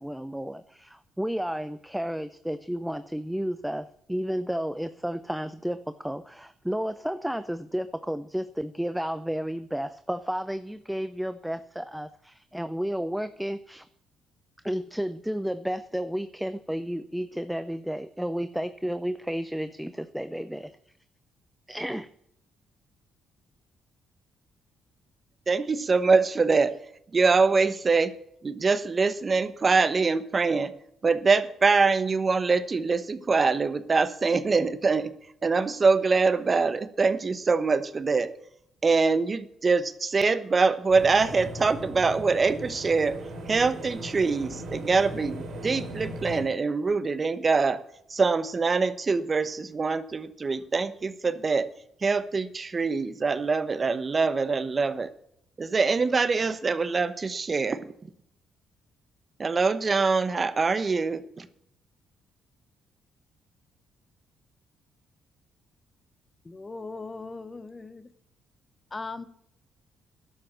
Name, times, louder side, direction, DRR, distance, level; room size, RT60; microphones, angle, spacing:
voice 1, 0.0-13.9 14.6-20.7 21.7-22.1, equal, 5° right, 12 dB, 0.6 m, -32 dB
voice 2, 25.5-26.7 27.1-28.1 28.4-30.7 31.0-35.1 35.4-38.3 38.8-43.2 43.5-47.8 48.1-51.7 52.0-55.1 55.6-58.1 59.4-61.5, right 4 dB, 35° right, 13 dB, 1.0 m, -24 dB
sound 1, 40.9-46.4, right 1 dB, 65° right, 4.5 m, -38 dB
voice 3, 66.4-68.1 68.9-69.3, left 3 dB, 25° left, 14 dB, 1.1 m, -38 dB
11.5 x 7.8 x 7.6 m, 0.72 s
cardioid pair, 90°, 0 cm